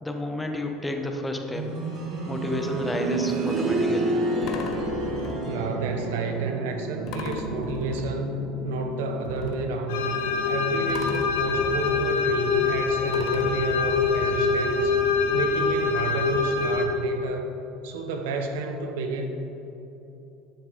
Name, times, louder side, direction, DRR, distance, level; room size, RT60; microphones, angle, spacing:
voice 1, 0.0-1.7 2.3-4.2, left 1 dB, 10° left, 4 dB, 1.0 m, -31 dB
sound 1, 1.5-12.3 12.6-12.7 13.6-13.7, right 2 dB, 55° right, 1.6 m, -31 dB
sound 2, 3.1-3.2 4.4-5.8 7.1-8.6 9.3-10.5 10.9-12.8 13.1-14.8 15.7-15.8 16.1-16.2, left 4 dB, 55° left, 0.9 m, -37 dB
voice 2, 5.4-10.2 10.4-15.0 15.3-17.5 17.8-19.3, right 3 dB, 85° right, 5 dB, 1.0 m, -30 dB
sound 3, 9.9-16.8, left 4 dB, 85° left, 1.0 m, -24 dB
10.5 x 6.3 x 5.1 m, 3.0 s
supercardioid pair, 115°, 0 cm